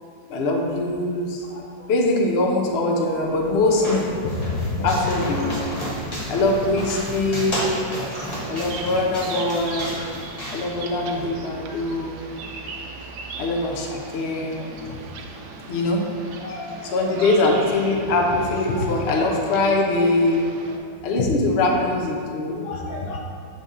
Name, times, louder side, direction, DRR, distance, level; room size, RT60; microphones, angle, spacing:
voice 1, 0.3-1.4 1.9-5.4 6.3-7.7 8.5-10.2 10.5-12.2 13.4-14.6 14.9-15.0 15.7-16.0 16.9-20.6 21.0-22.6, left 2 dB, 65° left, 0 dB, 0.6 m, -22 dB
voice 2, 1.4-1.9 14.6-14.9 16.4-17.3 18.8-18.9 19.2-19.5 20.7-20.8 21.6-21.8 22.5-23.2, left 3 dB, 85° left, -2 dB, 1.6 m, -37 dB
sound 1, 3.1-11.3, equal, 25° left, 1.0 m, -32 dB
sound 2, 4.9-20.8, right 4 dB, 75° right, 1.2 m, -39 dB
6.8 x 3.9 x 3.7 m, 2.2 s
omnidirectional pair, 1.9 m